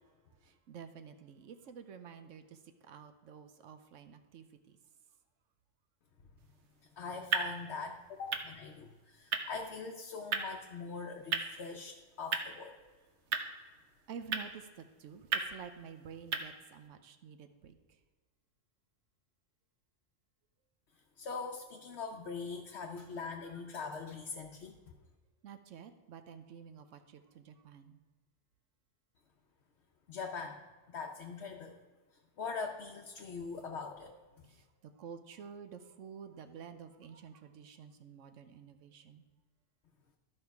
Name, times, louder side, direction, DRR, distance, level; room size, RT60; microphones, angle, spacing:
voice 1, 0.4-4.5 14.1-17.8 25.4-28.0 34.5-34.6 35.0-39.2, right 7 dB, 90° right, 9 dB, 1.1 m, -50 dB
sound 1, 6.4-16.9, right 5 dB, 70° right, 1.1 m, -40 dB
voice 2, 7.0-12.7 21.2-24.8 30.1-30.6 30.9-31.8 32.4-34.5, left 4 dB, 65° left, 1 dB, 1.0 m, -42 dB
13.0 x 5.6 x 4.6 m, 1.4 s
omnidirectional pair, 1.3 m